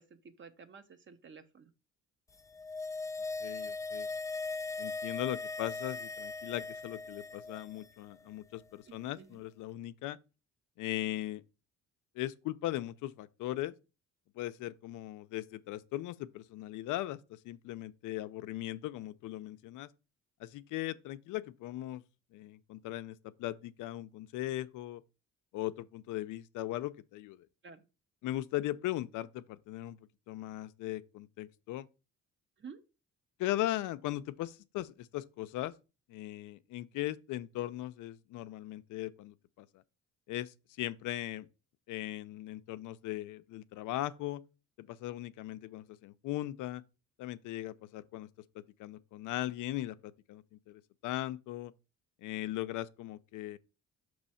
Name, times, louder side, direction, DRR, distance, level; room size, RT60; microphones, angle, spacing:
voice 1, 0.0-1.7 8.9-9.4 27.6-27.8 32.6-32.8, right 5 dB, 40° right, 0.9 m, -52 dB
sound 1, 2.4-7.9 8.1-8.2, left 3 dB, 10° left, 0.3 m, -39 dB
voice 2, 3.4-4.1 4.8-10.2 10.8-11.4 12.2-13.7 14.4-19.9 20.4-22.0 22.3-25.0 25.5-27.5 28.2-30.0 30.3-31.9 33.4-35.7 36.1-39.7 40.3-41.5 41.9-44.4 44.8-46.8 47.2-48.3 48.8-51.7 52.2-53.6, left 15 dB, 85° left, 0.5 m, -38 dB
6.1 x 3.1 x 5.6 m
cardioid pair, 90°, 30 cm